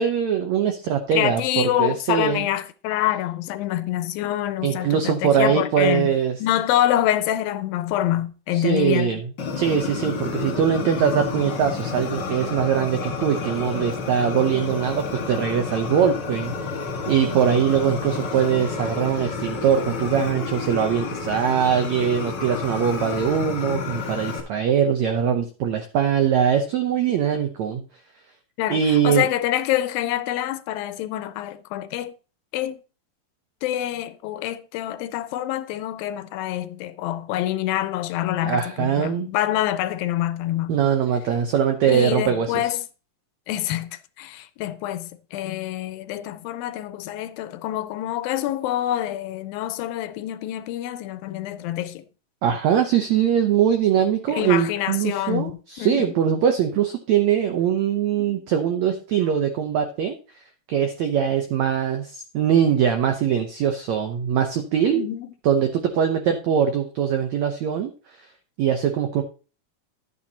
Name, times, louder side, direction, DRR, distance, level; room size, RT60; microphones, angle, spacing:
voice 1, 0.0-2.5 4.6-6.4 8.5-9.3 9.6-16.5 17.1-27.8 28.7-29.3 38.4-39.3 40.7-42.8 52.4-60.2 60.7-65.1 65.4-67.9 68.6-69.2, right 8 dB, 80° right, 1.6 m, -22 dB
voice 2, 1.1-6.1 6.4-9.2 28.6-32.1 32.5-32.8 33.6-40.8 41.9-42.8 43.5-52.0 54.3-55.5 55.8-56.1 64.9-65.3, left 13 dB, 80° left, 2.3 m, -26 dB
Fire, 9.4-24.4, left 4 dB, 45° left, 1.6 m, -30 dB
11.5 x 8.9 x 2.8 m
omnidirectional pair, 4.3 m